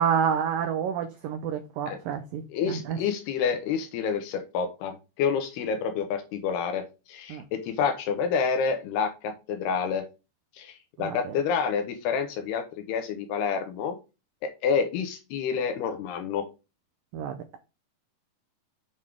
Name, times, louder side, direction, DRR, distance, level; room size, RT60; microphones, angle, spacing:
voice 1, 0.0-3.0 7.3-7.4 11.0-11.2 17.1-17.6, right 7 dB, 85° right, 2.0 m, -28 dB
voice 2, 2.5-10.0 10.6-14.0 14.4-16.4, left 6 dB, 75° left, 2.9 m, -28 dB
7.3 x 6.3 x 3.6 m
omnidirectional pair, 5.0 m